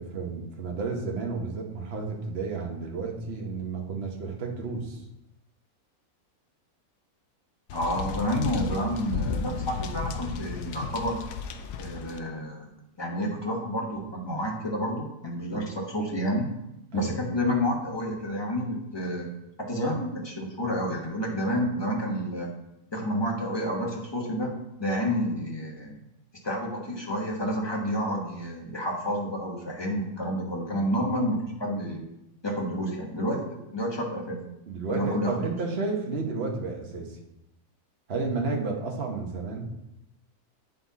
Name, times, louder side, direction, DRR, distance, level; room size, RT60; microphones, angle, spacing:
voice 1, 0.0-5.0 16.9-17.2 34.7-37.2 38.1-39.7, right 4 dB, 45° right, 1 dB, 1.3 m, -32 dB
sound 1, 7.7-12.2, left 5 dB, 70° left, 1.0 m, -34 dB
voice 2, 7.7-11.2 11.8-12.6 13.0-16.5 16.9-19.3 19.6-22.5 22.9-24.5 24.8-26.0 26.4-32.0 32.4-33.4 33.7-34.4 34.9-35.5, equal, 20° left, -1 dB, 1.2 m, -29 dB
9.3 x 4.3 x 4.1 m, 0.88 s
omnidirectional pair, 1.6 m